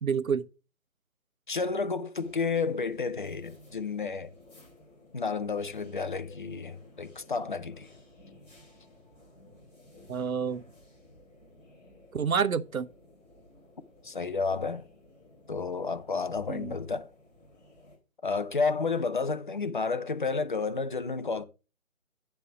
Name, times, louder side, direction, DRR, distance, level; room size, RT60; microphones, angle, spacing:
voice 1, 0.0-0.5 10.1-10.6 12.1-12.9 16.5-16.7, right 6 dB, 80° right, 0.9 m, -28 dB
voice 2, 1.5-4.3 5.1-7.9 14.0-14.8 15.5-17.1 18.2-21.4, left 4 dB, 40° left, 0.6 m, -31 dB
sound 1, 2.1-18.0, left 1 dB, 5° left, 1.8 m, -55 dB
10.0 x 3.4 x 7.0 m
figure-of-eight pair, 160°, 41 cm